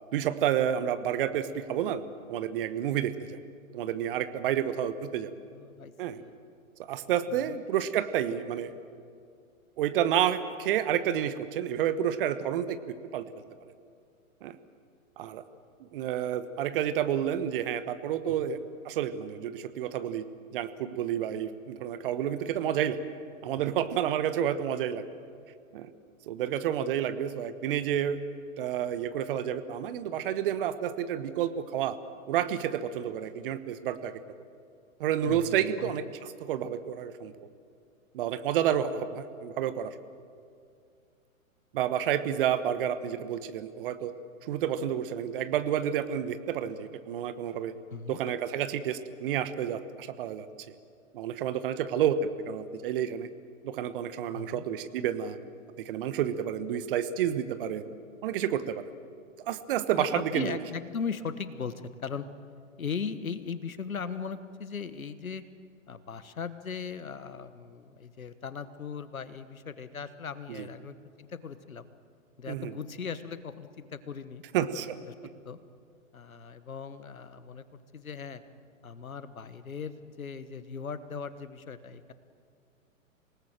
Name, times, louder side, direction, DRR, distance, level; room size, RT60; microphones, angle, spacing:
voice 1, 0.1-2.0 2.3-3.4 3.7-5.3 6.0-6.2 6.8-8.7 9.8-13.2 14.4-14.6 15.2-15.4 15.9-18.6 18.8-20.2 20.5-23.0 23.4-25.0 25.7-25.9 26.3-28.2 28.6-32.0 32.3-34.2 35.0-36.0 36.4-37.3 38.1-39.9 41.7-44.1 44.5-47.7 48.1-50.5 51.1-53.3 53.6-55.4 55.8-57.8 58.2-58.8 59.5-60.6 72.5-72.7 74.5-75.0, right 10 dB, 40° right, 12 dB, 1.2 m, -30 dB
voice 2, 5.5-6.3 7.3-7.6 18.3-18.5 23.6-23.8 35.2-35.9 47.9-48.2 54.3-54.6 60.0-62.2 62.8-65.4 65.9-71.9 72.4-74.4 75.0-75.1 75.4-75.6 76.1-78.4 78.8-82.1, left 6 dB, 75° left, 13 dB, 1.3 m, -38 dB
27.0 x 18.5 x 7.6 m, 2.4 s
figure-of-eight pair, 115°, 42 cm